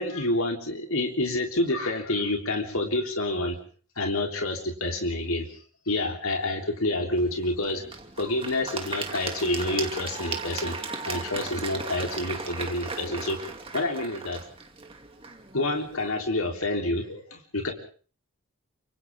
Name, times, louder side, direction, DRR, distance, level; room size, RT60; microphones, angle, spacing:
voice 1, 0.0-3.6 4.0-5.6 5.9-7.8 8.2-10.8 11.1-13.4 13.7-14.4 15.5-17.7, left 2 dB, 85° left, 2 dB, 3.6 m, -28 dB
Applause / Crowd, 7.2-16.2, right 4 dB, 25° right, 2.6 m, -37 dB
28.5 x 26.0 x 3.7 m, 0.43 s
head